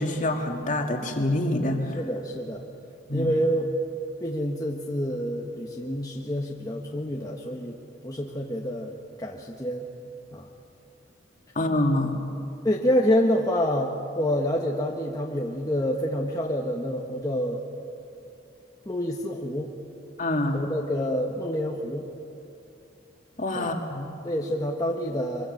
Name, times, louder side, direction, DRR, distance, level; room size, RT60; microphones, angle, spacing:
voice 1, 0.0-2.0 3.1-3.3 11.6-12.2 20.2-20.6 23.4-24.1, left 1 dB, 45° left, 3 dB, 2.2 m, -26 dB
voice 2, 2.0-2.6 3.1-3.7 4.2-7.8 8.0-9.9 10.3-10.5 12.6-17.6 18.8-19.7 20.5-22.1 23.5-23.7 24.2-25.5, equal, 20° left, -1 dB, 1.3 m, -27 dB
24.5 x 23.0 x 6.6 m, 2.8 s
head